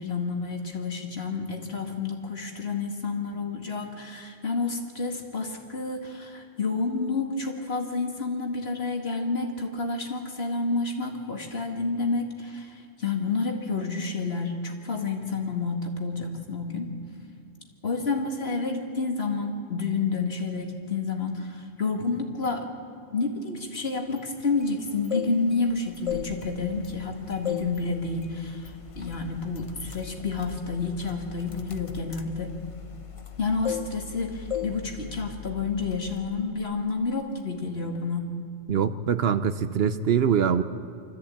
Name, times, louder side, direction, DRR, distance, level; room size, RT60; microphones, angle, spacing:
voice 1, 0.0-16.9 17.8-22.7 23.1-32.5 33.4-38.3, left 4 dB, 55° left, 3 dB, 2.3 m, -29 dB
Engine starting, 23.6-23.7 24.1-24.7 25.0-25.1 25.5-37.4, left 8 dB, 85° left, 1.4 m, -45 dB
sound 1, 24.9-25.7 26.0-27.1 27.5-27.8 28.2-28.4 29.0-29.2 29.5-33.4 33.6-34.2 34.5-34.8 35.1-35.3, left 8 dB, 30° left, 0.8 m, -34 dB
voice 2, 38.7-40.6, right 7 dB, 60° right, 12 dB, 0.8 m, -23 dB
25.5 x 14.0 x 8.6 m, 2.5 s
omnidirectional pair, 1.2 m